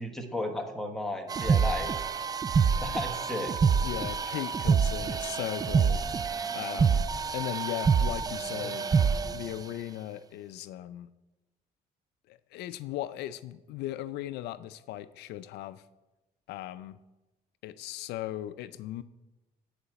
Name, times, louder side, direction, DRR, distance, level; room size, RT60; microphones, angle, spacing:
voice 1, 0.0-2.0 2.8-3.6 8.5-8.7, left 1 dB, ahead, 3 dB, 1.4 m, -34 dB
sound 1, 1.3-9.5, right 6 dB, 20° right, 0.3 m, -27 dB
voice 2, 3.8-6.0 6.6-7.1 7.3-8.9 9.3-11.1 12.3-15.8 16.5-17.0 17.6-19.0, left 13 dB, 80° left, 15 dB, 0.4 m, -37 dB
10.0 x 4.9 x 7.9 m, 1.1 s
cardioid pair, 110°, 17 cm